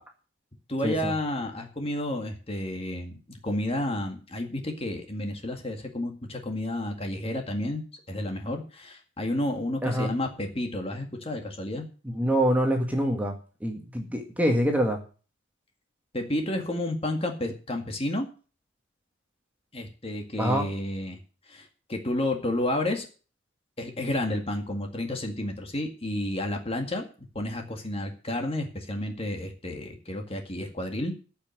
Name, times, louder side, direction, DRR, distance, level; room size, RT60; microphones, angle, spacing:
voice 1, 0.7-11.9 16.1-18.3 19.7-21.2 21.5-23.1 23.8-27.1 27.3-31.1, left 1 dB, 30° left, 4 dB, 2.0 m, -31 dB
voice 2, 9.8-10.1 12.0-13.3 13.6-15.0 20.4-20.7, equal, 5° right, 2 dB, 1.9 m, -25 dB
14.0 x 6.0 x 7.7 m, 0.37 s
head